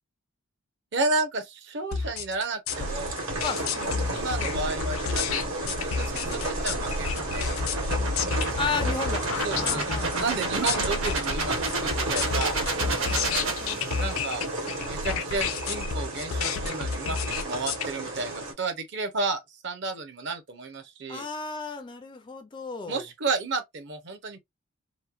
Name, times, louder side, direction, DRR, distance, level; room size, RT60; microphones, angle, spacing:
voice 1, 0.9-3.1 4.1-7.5 9.4-11.6 11.8-12.6 14.0-14.4 14.9-21.3 22.9-24.4, right 3 dB, 55° right, 0.6 m, -32 dB
sound 1, 1.9-17.9, left 6 dB, 80° left, 0.5 m, -31 dB
sound 2, 2.7-18.5, right 2 dB, 90° right, 1.4 m, -33 dB
voice 2, 3.4-4.3 8.6-10.5 12.8-14.0 17.5-17.6 21.1-23.0, left 5 dB, 20° left, 0.3 m, -35 dB
sound 3, 4.2-14.3, right 2 dB, 70° right, 1.0 m, -32 dB
3.1 x 2.1 x 2.4 m
head